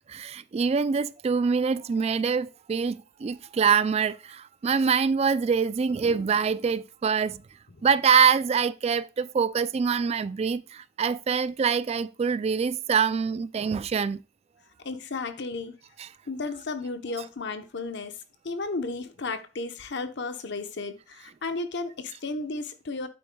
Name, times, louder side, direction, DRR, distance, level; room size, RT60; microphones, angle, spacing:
voice 1, 0.1-7.4 7.8-14.2 16.0-16.1, right 6 dB, 35° right, 0.3 m, -25 dB
voice 2, 14.8-15.8 16.3-18.2 18.4-23.1, left 3 dB, 65° left, 0.9 m, -33 dB
8.8 x 8.5 x 2.3 m
head